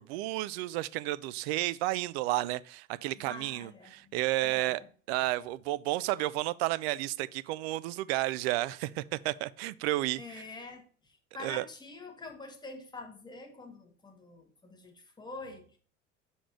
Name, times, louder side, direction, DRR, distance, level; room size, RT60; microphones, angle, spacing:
voice 1, 0.0-4.8 5.1-10.4 11.4-11.6, right 17 dB, 55° right, 0.5 m, -32 dB
voice 2, 3.1-4.2 4.4-4.9 10.2-15.8, left 3 dB, 10° left, 1.5 m, -46 dB
5.9 x 4.0 x 4.7 m
figure-of-eight pair, 70°, 37 cm